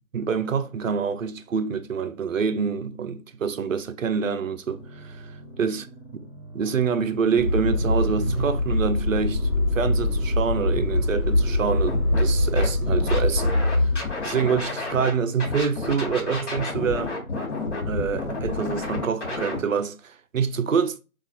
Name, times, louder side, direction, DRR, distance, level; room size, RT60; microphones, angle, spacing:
voice 1, 0.1-5.3 5.6-5.8 6.5-13.9 14.2-17.1 17.8-21.0, right 6 dB, 65° right, 0.5 m, -26 dB
sound 1, 4.6-17.9, right 2 dB, 75° left, 1.3 m, -44 dB
Motor vehicle (road), 7.4-14.0, left 1 dB, 20° right, 0.8 m, -23 dB
Scratching (performance technique), 11.9-12.2 12.6-15.1 15.4-19.6, left 3 dB, 55° left, 1.3 m, -30 dB
4.0 x 2.4 x 2.3 m
figure-of-eight pair, 160°, 43 cm